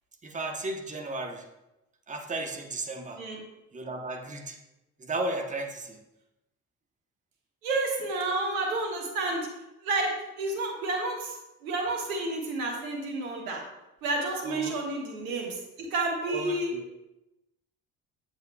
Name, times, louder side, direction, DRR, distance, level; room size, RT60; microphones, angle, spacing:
voice 1, 0.2-1.4 2.1-3.2 3.7-4.6 5.1-6.0 14.4-14.8 16.3-16.8, right 2 dB, 15° right, 4 dB, 0.9 m, -34 dB
voice 2, 7.6-9.5 9.8-11.4 11.6-13.6 14.0-16.7, right 2 dB, 70° right, 1 dB, 1.4 m, -30 dB
7.9 x 7.0 x 2.3 m, 0.95 s
figure-of-eight pair, 50°, 43 cm